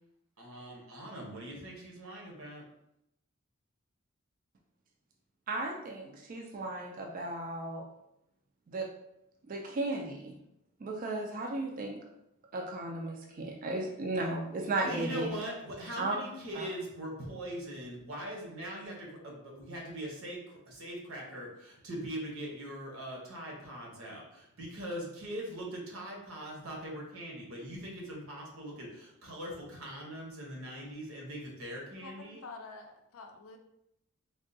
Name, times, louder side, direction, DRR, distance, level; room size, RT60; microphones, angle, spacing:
voice 1, 0.4-2.6 14.8-32.4, equal, 70° right, -2 dB, 0.9 m, -41 dB
voice 2, 5.5-7.8 8.7-8.9 9.5-10.4 10.8-12.0 12.5-15.3 16.0-16.2 16.5-16.7, right 2 dB, 40° right, 1 dB, 0.3 m, -35 dB
voice 3, 32.0-33.6, left 3 dB, 75° left, 4 dB, 0.4 m, -48 dB
3.5 x 2.2 x 2.6 m, 0.82 s
head